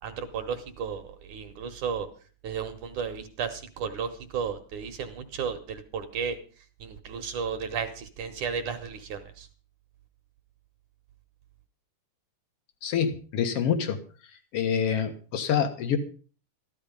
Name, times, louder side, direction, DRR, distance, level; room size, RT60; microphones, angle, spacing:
voice 1, 0.0-2.1 2.4-6.4 6.8-9.5, right 6 dB, 65° right, 8 dB, 2.1 m, -33 dB
voice 2, 12.8-14.0 14.5-16.0, left 8 dB, 80° left, 8 dB, 1.3 m, -26 dB
14.0 x 13.5 x 5.2 m, 0.39 s
omnidirectional pair, 4.8 m